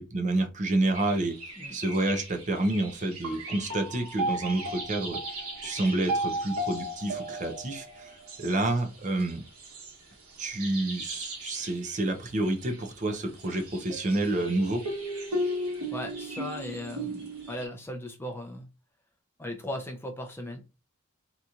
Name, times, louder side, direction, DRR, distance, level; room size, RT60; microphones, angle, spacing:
voice 1, 0.0-1.3 1.7-5.4 5.6-9.4 10.4-14.8, right 2 dB, 35° right, 0.6 m, -29 dB
sound 1, 0.9-17.7, right 1 dB, 75° right, 1.2 m, -36 dB
voice 2, 15.9-18.7 19.4-20.6, left 1 dB, 10° left, 0.5 m, -37 dB
4.0 x 2.9 x 2.4 m
head